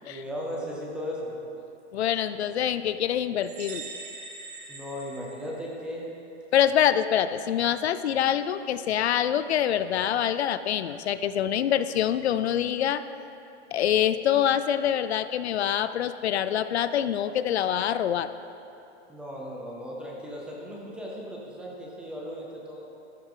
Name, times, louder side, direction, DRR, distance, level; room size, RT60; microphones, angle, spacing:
voice 1, 0.0-1.4 4.7-6.1 19.1-22.9, equal, 5° right, -3 dB, 0.6 m, -36 dB
voice 2, 1.9-3.9 6.5-13.0 13.7-18.3, left 10 dB, 65° left, 13 dB, 0.5 m, -25 dB
sound 1, 3.4-6.0, right 3 dB, 30° right, 1.8 m, -42 dB
12.5 x 12.5 x 3.8 m, 2.8 s
hypercardioid pair, 165°, 35 cm